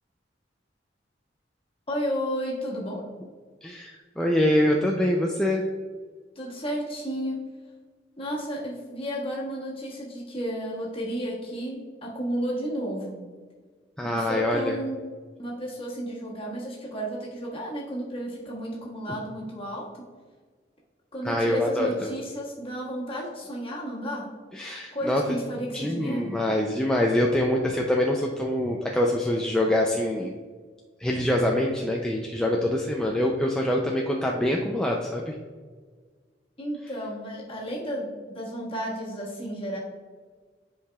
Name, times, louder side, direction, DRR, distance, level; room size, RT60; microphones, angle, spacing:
voice 1, 1.9-3.1 6.3-7.4 8.2-13.2 14.0-15.0 15.4-19.9 21.1-24.3 24.9-26.4 36.6-39.8, equal, 30° left, -4 dB, 1.6 m, -32 dB
voice 2, 3.6-5.6 14.0-14.8 21.2-22.1 24.5-25.4 25.7-30.3 31.0-35.4, left 1 dB, 5° left, -1 dB, 0.4 m, -25 dB
10.0 x 4.7 x 2.3 m, 1.5 s
head